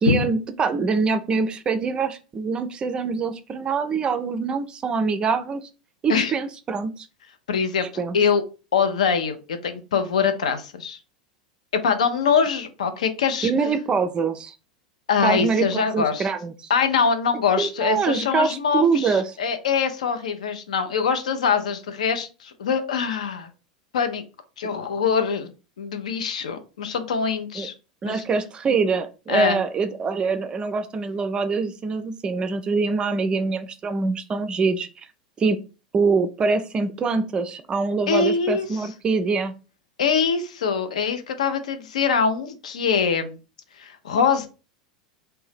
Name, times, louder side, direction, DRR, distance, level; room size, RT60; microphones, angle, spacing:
voice 1, 0.0-5.7 6.0-7.1 8.0-8.2 13.4-14.6 15.2-16.7 17.6-19.4 27.6-27.7 28.0-34.9 35.4-35.6 35.9-39.5, right 4 dB, 25° right, 9 dB, 0.3 m, -24 dB
voice 2, 7.5-8.4 8.7-11.0 11.7-13.5 15.1-16.3 16.7-23.5 23.9-24.2 24.6-25.5 25.8-27.7 28.1-28.2 29.3-29.6 38.1-38.7 40.0-43.4 43.8-44.5, left 6 dB, 70° left, 8 dB, 0.4 m, -23 dB
2.6 x 2.1 x 3.3 m, 0.32 s
figure-of-eight pair, 85°, 4 cm